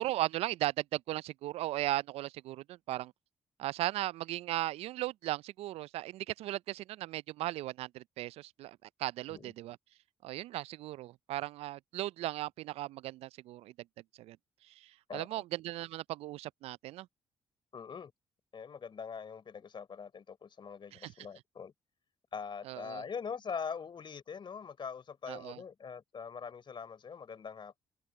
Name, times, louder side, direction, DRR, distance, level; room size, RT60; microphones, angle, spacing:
voice 1, 0.0-3.1 3.6-9.8 10.2-13.7 14.1-14.4 14.7-17.1 20.9-21.1 22.7-23.0 25.3-25.6, right 16 dB, 70° right, 0.4 m, -37 dB
voice 2, 17.7-18.1 18.5-21.7 22.3-27.8, left 6 dB, 50° left, 3.8 m, -43 dB
hypercardioid pair, 50°, 11 cm